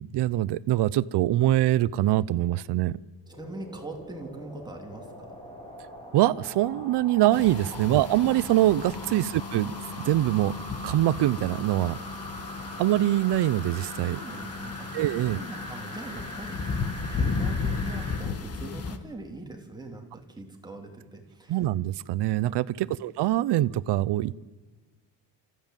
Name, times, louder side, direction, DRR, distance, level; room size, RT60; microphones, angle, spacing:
voice 1, 0.0-3.0 6.1-10.5 10.8-12.0 12.8-14.2 14.9-15.4 21.5-24.4, right 14 dB, 70° right, 18 dB, 0.7 m, -24 dB
sound 1, 3.3-18.2 18.7-18.8, equal, 10° left, 7.0 m, -42 dB
voice 2, 3.3-5.4 7.7-7.8 9.1-9.2 14.1-16.7 17.1-21.6 22.7-22.9, right 2 dB, 10° right, 2 dB, 2.9 m, -42 dB
sound 2, 7.3-19.0, left 4 dB, 35° left, 1.6 m, -35 dB
28.5 x 14.5 x 9.1 m, 1.4 s
cardioid pair, 150°, 42 cm